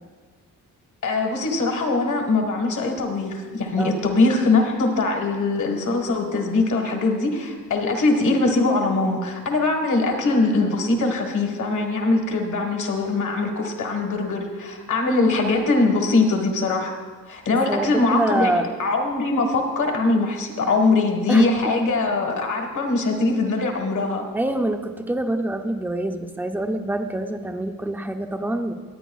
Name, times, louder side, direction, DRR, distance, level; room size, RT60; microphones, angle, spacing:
voice 1, 1.0-17.0 17.3-24.2, left 3 dB, 60° left, 3 dB, 1.5 m, -22 dB
voice 2, 17.5-18.7 21.3-21.5 24.3-28.7, right 1 dB, 5° right, 6 dB, 0.4 m, -26 dB
19.0 x 9.1 x 2.3 m, 1.5 s
wide cardioid pair, 170°, 35 cm